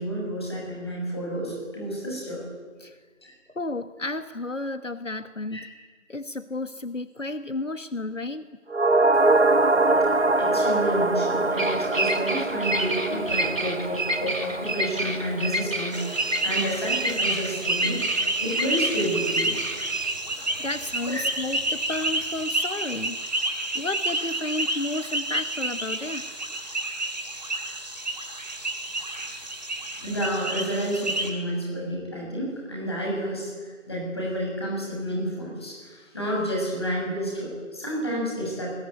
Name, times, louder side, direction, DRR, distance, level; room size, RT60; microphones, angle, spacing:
voice 1, 0.0-2.4 3.2-3.3 5.5-5.6 10.1-18.0 18.4-19.5 21.0-21.2 30.0-38.7, equal, 20° left, -2 dB, 6.9 m, -30 dB
voice 2, 3.5-5.6 6.1-8.6 20.6-23.2 23.7-26.2, left 2 dB, 70° left, 12 dB, 1.3 m, -32 dB
sound 1, 8.7-17.2 17.5-17.6, right 2 dB, 60° right, 1.1 m, -24 dB
Bird vocalization bird call bird song, 9.2-22.4, right 2 dB, 90° right, 2.5 m, -31 dB
sound 2, 15.9-31.3, right 2 dB, 35° right, 4.1 m, -30 dB
27.5 x 21.5 x 9.3 m, 1.5 s
figure-of-eight pair, 170°, 39 cm